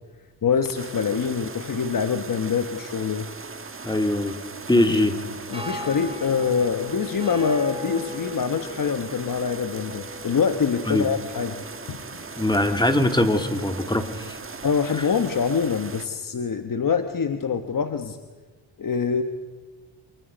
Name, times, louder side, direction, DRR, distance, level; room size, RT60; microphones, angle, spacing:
voice 1, 0.4-3.3 4.9-5.0 5.5-11.6 11.9-12.0 14.6-18.2 18.8-19.2, left 6 dB, 50° left, 7 dB, 1.3 m, -25 dB
sound 1, 0.7-16.1, right 4 dB, 30° right, 1.5 m, -39 dB
voice 2, 3.8-4.4 4.7-5.2 10.9-11.1 12.4-14.4 15.0-15.1, left 1 dB, 10° left, 6 dB, 2.4 m, -22 dB
sound 2, 5.5-15.8, left 2 dB, 15° right, 1.5 m, -40 dB
29.0 x 27.0 x 5.3 m, 1.3 s
cardioid pair, 85°, 42 cm